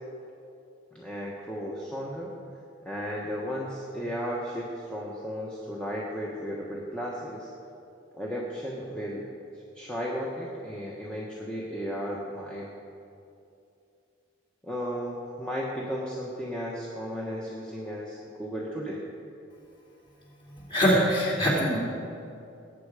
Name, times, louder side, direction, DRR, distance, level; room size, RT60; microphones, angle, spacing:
voice 1, 0.9-2.3 2.8-7.5 8.1-9.2 9.8-12.7 14.6-19.0, equal, 5° left, -4 dB, 1.1 m, -34 dB
voice 2, 20.7-21.8, equal, 25° left, -5 dB, 3.0 m, -23 dB
19.0 x 8.5 x 4.9 m, 2.6 s
head